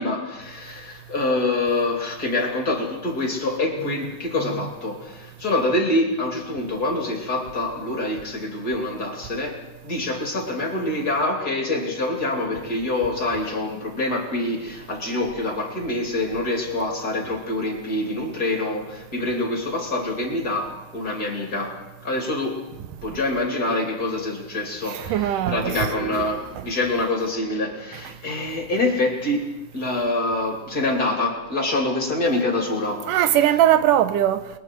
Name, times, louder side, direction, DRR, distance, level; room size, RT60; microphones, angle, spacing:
voice 1, 0.0-22.7 23.0-33.4, left 2 dB, 30° left, 3.2 m, -26 dB
voice 2, 24.9-25.7 33.1-34.5, right 11 dB, 90° right, 2.6 m, -20 dB
29.5 x 22.0 x 4.6 m
omnidirectional pair, 3.6 m